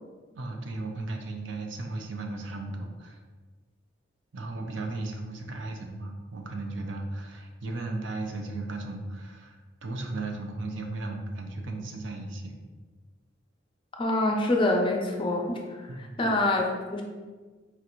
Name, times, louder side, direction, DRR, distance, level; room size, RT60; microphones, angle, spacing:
voice 1, 0.3-3.2 4.3-12.5 15.9-16.4, right 2 dB, 70° right, 2 dB, 0.5 m, -36 dB
voice 2, 14.0-15.6 16.0-17.0, left 2 dB, 25° left, 1 dB, 0.5 m, -25 dB
4.4 x 2.5 x 2.9 m, 1.4 s
head